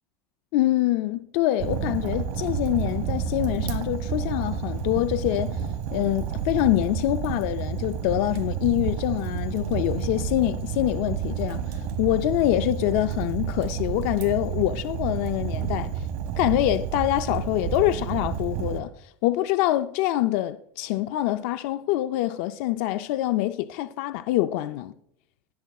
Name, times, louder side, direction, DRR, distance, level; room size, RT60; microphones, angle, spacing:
voice 1, 0.5-16.0 16.4-24.9, left 15 dB, 65° left, 0.4 m, -25 dB
Fire, 1.6-18.8, right 8 dB, 65° right, 1.2 m, -30 dB
19.5 x 7.2 x 2.3 m
cardioid pair, 160°, 8 cm